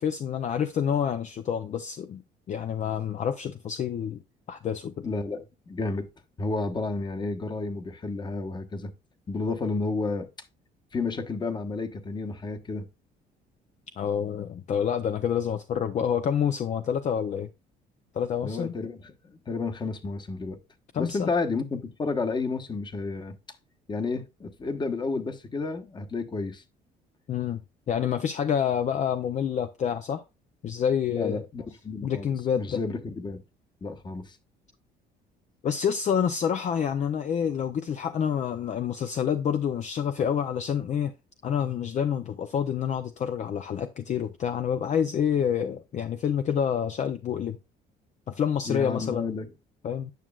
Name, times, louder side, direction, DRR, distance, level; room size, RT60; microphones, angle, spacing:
voice 1, 0.0-2.2 2.5-4.2 4.5-5.1 14.0-17.5 18.1-18.7 20.9-21.3 27.3-27.6 27.9-30.2 30.6-31.4 32.0-32.8 35.6-41.1 41.4-47.6 48.3-49.3 49.8-50.1, left 8 dB, 45° left, 0.6 m, -28 dB
voice 2, 5.0-6.1 6.4-8.9 9.3-10.3 10.9-12.9 18.4-20.6 21.0-23.3 23.9-26.6 31.1-32.3 32.6-33.4 33.8-34.4 48.7-49.5, left 3 dB, 25° left, 1.1 m, -31 dB
9.3 x 6.1 x 2.3 m
cardioid pair, 110°, 17 cm